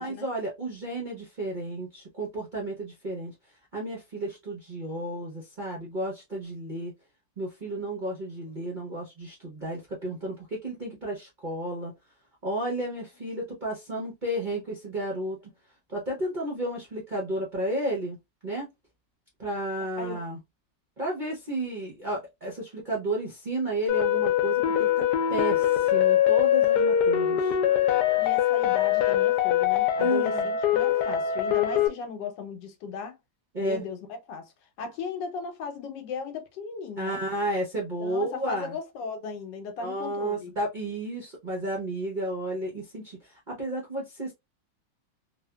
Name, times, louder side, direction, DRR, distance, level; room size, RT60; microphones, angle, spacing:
voice 1, 0.0-3.3 3.7-6.9 7.4-11.9 12.4-15.4 15.9-18.2 18.4-18.7 19.4-20.4 21.0-27.6 30.0-30.5 33.5-33.8 37.0-38.8 39.8-44.3, right 1 dB, 55° right, 0.5 m, -32 dB
sound 1, 23.9-31.9, left 10 dB, 75° left, 1.1 m, -23 dB
voice 2, 28.2-33.2 33.6-34.5 34.8-37.2 38.0-40.5, left 5 dB, 90° left, 1.4 m, -37 dB
3.1 x 2.1 x 2.2 m
omnidirectional pair, 1.9 m